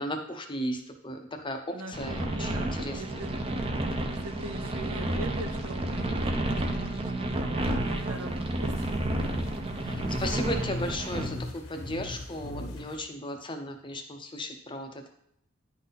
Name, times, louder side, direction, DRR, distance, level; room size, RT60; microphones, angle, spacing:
voice 1, 0.0-3.2 9.8-15.1, equal, 20° left, 5 dB, 0.6 m, -35 dB
voice 2, 1.7-3.4 4.1-9.4, right 2 dB, 90° right, 4 dB, 1.1 m, -42 dB
sound 1, 1.9-11.3, right 1 dB, 25° right, 0.6 m, -31 dB
sound 2, 9.1-13.0, left 2 dB, 65° left, 1.0 m, -39 dB
10.0 x 4.0 x 4.0 m, 0.74 s
head